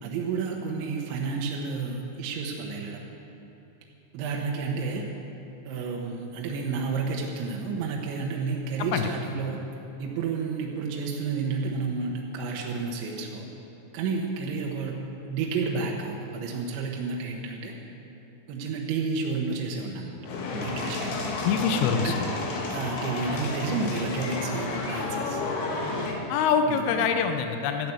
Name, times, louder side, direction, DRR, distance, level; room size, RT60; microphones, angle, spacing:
voice 1, 0.0-3.1 4.1-5.1 5.7-9.6 10.0-13.5 13.9-15.0 15.2-17.7 18.5-20.2 20.5-21.3 22.0-22.1 22.7-25.4 26.7-27.1, right 4 dB, 75° right, 0 dB, 3.4 m, -31 dB
sound 1, 20.2-26.1, left 3 dB, 60° left, 3.2 m, -31 dB
voice 2, 21.4-22.3 26.3-27.9, left 6 dB, 90° left, 6 dB, 2.2 m, -24 dB
13.0 x 12.5 x 8.4 m, 2.9 s
omnidirectional pair, 5.6 m